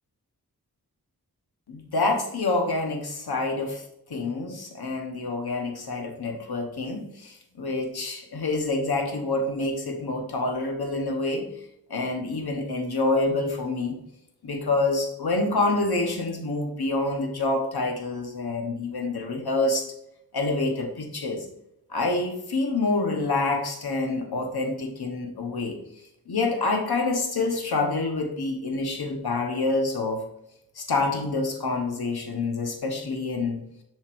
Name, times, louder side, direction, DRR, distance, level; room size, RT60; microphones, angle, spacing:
voice 1, 1.7-3.8 4.1-11.5 11.9-14.0 14.4-19.9 20.3-21.5 21.9-25.8 26.3-30.2 30.7-33.6, left 3 dB, 75° left, 3 dB, 1.1 m, -27 dB
7.4 x 5.3 x 2.6 m, 0.80 s
wide cardioid pair, 75°, 38 cm